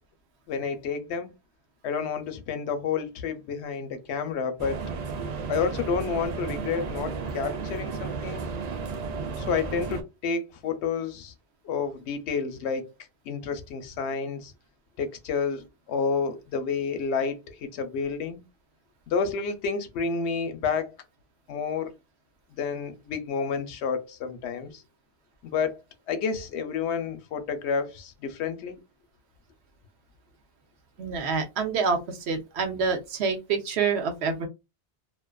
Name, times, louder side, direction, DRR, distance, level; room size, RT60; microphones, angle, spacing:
voice 1, 0.5-1.3 1.8-4.8 5.5-8.5 9.4-11.3 11.6-12.9 13.3-14.5 15.0-18.4 19.1-20.9 21.5-21.9 22.6-24.8 25.4-25.8 26.1-28.8, left 5 dB, 80° left, 0.9 m, -30 dB
sound 1, 4.6-10.0, right 5 dB, 55° right, 0.5 m, -33 dB
voice 2, 31.0-34.5, right 5 dB, 80° right, 0.9 m, -27 dB
2.5 x 2.3 x 2.2 m
omnidirectional pair, 1.1 m